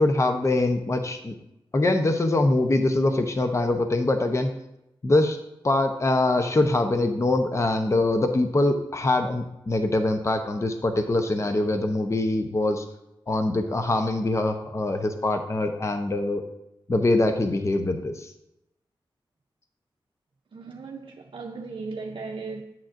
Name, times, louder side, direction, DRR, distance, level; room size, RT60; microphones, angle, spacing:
voice 1, 0.0-1.3 1.7-4.5 5.0-5.4 5.6-12.8 13.3-16.4 16.9-18.3, left 2 dB, 30° left, 0.8 m, -23 dB
voice 2, 20.5-22.6, right 4 dB, 60° right, 0.6 m, -36 dB
8.8 x 7.2 x 2.6 m
wide cardioid pair, 75°, 9 cm